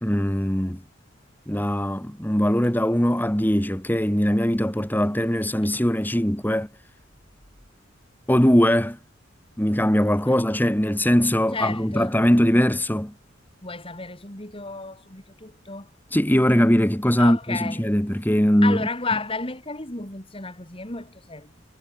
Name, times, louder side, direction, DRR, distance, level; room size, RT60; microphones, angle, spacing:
voice 1, 0.0-0.8 1.5-6.7 8.3-9.0 9.6-13.1 16.1-18.8, equal, 10° left, 2.2 m, -21 dB
voice 2, 11.5-12.2 13.6-15.9 17.2-17.9 18.6-21.6, left 3 dB, 30° left, 4.4 m, -32 dB
head